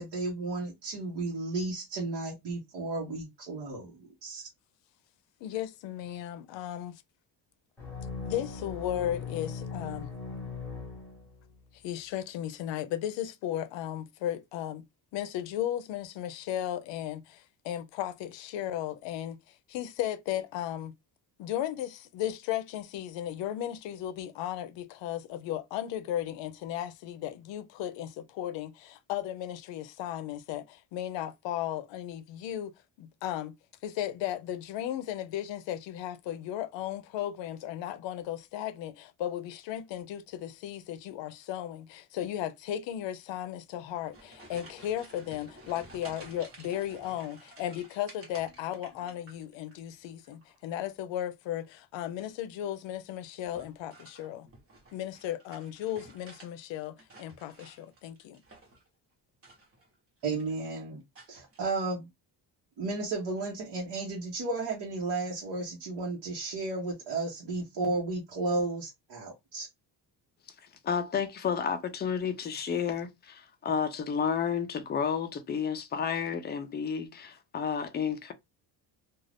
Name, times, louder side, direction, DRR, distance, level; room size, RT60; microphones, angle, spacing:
voice 1, 0.0-4.5 60.2-61.0 61.3-62.1 62.8-69.7, right 3 dB, 60° right, 1.0 m, -33 dB
voice 2, 5.4-7.0 8.2-10.1 11.8-14.9 15.1-20.9 21.4-32.7 33.0-33.6 33.8-54.5 54.9-58.4, left 11 dB, 90° left, 0.6 m, -35 dB
sound 1, 7.8-11.6, left 4 dB, 5° left, 0.9 m, -39 dB
sound 2, 43.7-49.8 50.1-50.6 52.0-52.4 53.4-56.5 56.8-58.9 59.3-59.9 60.2-60.7 61.2-61.6, right 2 dB, 30° right, 1.0 m, -53 dB
voice 3, 70.8-78.3, left 7 dB, 25° left, 0.4 m, -31 dB
2.4 x 2.4 x 3.3 m
cardioid pair, 165°, 43 cm